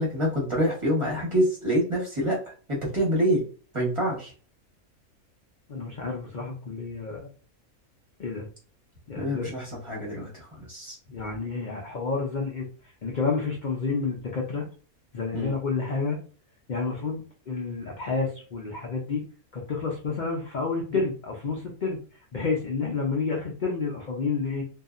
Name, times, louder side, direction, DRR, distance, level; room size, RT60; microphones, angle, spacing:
voice 1, 0.0-2.4 2.7-3.4 3.7-4.3 9.1-11.0 15.3-15.6 20.9-21.0, equal, 25° right, -4 dB, 1.0 m, -26 dB
voice 2, 5.7-7.3 8.2-8.5 9.1-9.5 11.1-12.7 13.0-14.6 15.1-16.2 16.7-19.2 19.5-22.0 22.3-24.6, left 4 dB, 55° left, -1 dB, 0.5 m, -29 dB
2.7 x 2.4 x 2.4 m, 0.38 s
omnidirectional pair, 1.5 m